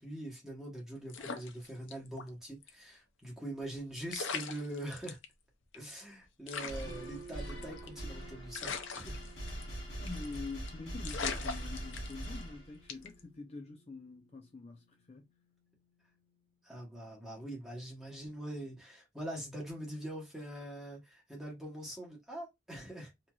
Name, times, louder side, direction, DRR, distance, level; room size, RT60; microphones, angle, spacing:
voice 1, 0.0-5.2 5.7-9.2 16.6-23.1, right 1 dB, 5° right, 1.0 m, -43 dB
sound 1, 1.1-2.3 2.6-2.7 3.7-3.8 4.1-5.3 5.7-5.8 6.0-6.1 6.5-8.0 8.5-9.8 10.1-10.4 10.7-10.8 11.0-12.4 12.9-13.2, left 5 dB, 90° left, 0.5 m, -40 dB
sound 2, 6.7-13.0, equal, 65° left, 1.2 m, -42 dB
sound 3, 6.8-16.6, right 4 dB, 90° right, 0.8 m, -57 dB
voice 2, 10.0-15.2, left 4 dB, 35° left, 0.4 m, -45 dB
3.0 x 2.6 x 2.3 m
head